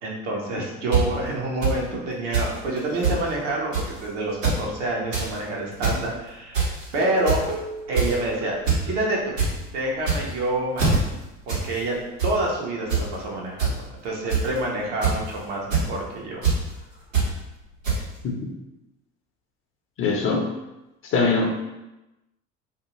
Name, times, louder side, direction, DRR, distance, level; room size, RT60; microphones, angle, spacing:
voice 1, 0.0-7.4 7.9-8.6 8.8-9.3 9.7-11.0 11.5-12.0 12.2-16.4, right 1 dB, 70° right, -2 dB, 0.9 m, -27 dB
sound 1, 0.9-1.0 1.6-1.7 2.3-2.5 2.8-2.9 3.0-3.2 3.7-3.9 4.3-4.6 4.9-5.3 5.7-6.0 6.5-6.8 7.3-7.5 7.9-8.2 8.7-8.8 9.1-9.5 10.0-10.4 10.8-11.0 11.5-11.6 11.9-12.3 12.9-13.0 13.6-13.7 14.3-14.6 15.0-15.3 15.7-15.9 16.4-16.5 17.1-17.3 17.8-18.0, right 5 dB, 90° right, 1.2 m, -22 dB
sound 2, 6.9-9.5 9.8-9.9 10.3-10.4 10.7-10.8, right 4 dB, 45° right, 0.5 m, -36 dB
voice 2, 20.0-20.5 21.0-21.5, left 4 dB, 35° left, 1 dB, 0.6 m, -22 dB
2.6 x 2.3 x 2.9 m, 0.98 s
figure-of-eight pair, 65°, 37 cm